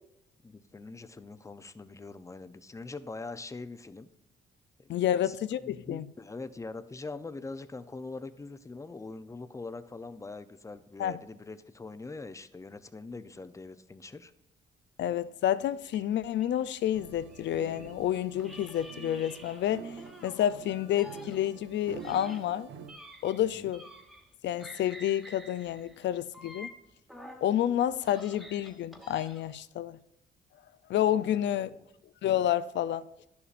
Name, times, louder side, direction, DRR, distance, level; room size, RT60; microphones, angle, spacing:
voice 1, 0.4-4.1 4.8-5.4 5.6-14.3 23.4-23.7 31.0-31.7, left 3 dB, 15° left, 0.6 m, -43 dB
voice 2, 4.9-6.1 11.0-11.2 15.0-20.0 20.2-22.7 23.2-23.8 24.4-26.7 27.4-30.0 30.9-31.7 32.2-33.1, left 11 dB, 65° left, 0.5 m, -29 dB
sound 1, 15.9-18.0 18.4-20.6 20.9-24.3 24.6-27.5 27.9-29.6, equal, ahead, 1.2 m, -50 dB
sound 2, 16.9-22.9, right 6 dB, 70° right, 0.8 m, -47 dB
10.5 x 7.0 x 2.5 m
cardioid pair, 90°, 20 cm